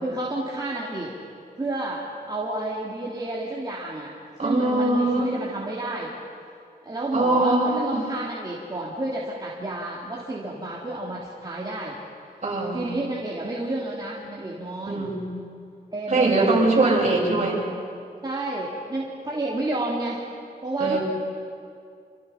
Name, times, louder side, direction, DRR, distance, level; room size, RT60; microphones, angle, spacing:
voice 1, 0.0-1.1 1.6-4.1 4.4-6.1 6.8-7.6 7.9-12.0 12.7-15.1 15.9-16.9 18.2-20.2 20.6-21.0, right 2 dB, 25° right, -5 dB, 3.0 m, -30 dB
voice 2, 4.4-5.4 7.1-8.0 12.4-12.9 14.9-15.3 16.1-17.6 20.8-21.0, right 2 dB, 45° right, -3 dB, 7.4 m, -22 dB
28.0 x 27.5 x 5.8 m, 2.4 s
wide cardioid pair, 130°, 17 cm